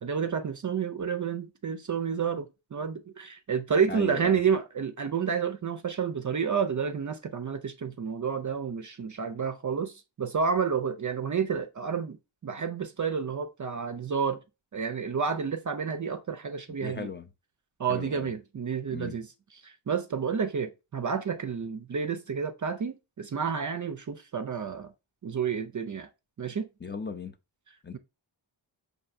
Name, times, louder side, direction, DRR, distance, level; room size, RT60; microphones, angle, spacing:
voice 1, 0.0-12.2 12.4-14.4 14.7-17.1 17.8-19.3 19.6-24.9 25.2-26.1 26.4-26.7, right 6 dB, 40° right, 0.4 m, -30 dB
voice 2, 3.9-4.4 16.8-17.3 17.9-18.3 18.9-19.2 26.8-27.3 27.8-28.0, left 5 dB, 25° left, 0.4 m, -37 dB
5.4 x 2.7 x 2.5 m
wide cardioid pair, 60°, 48 cm